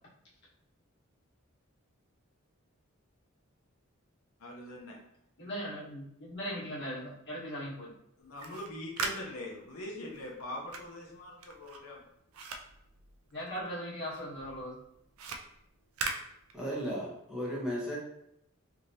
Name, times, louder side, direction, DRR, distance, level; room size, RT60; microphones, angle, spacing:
voice 1, 4.4-5.0 8.2-12.0, left 1 dB, 75° left, -3 dB, 0.7 m, -42 dB
voice 2, 5.4-7.9 13.3-14.8, equal, 55° left, -7 dB, 1.3 m, -39 dB
sound 1, 8.2-13.8 14.1-17.0, right 4 dB, 70° right, 0.4 m, -41 dB
voice 3, 16.5-18.0, equal, 5° right, -6 dB, 0.8 m, -35 dB
3.2 x 2.7 x 2.7 m, 0.76 s
head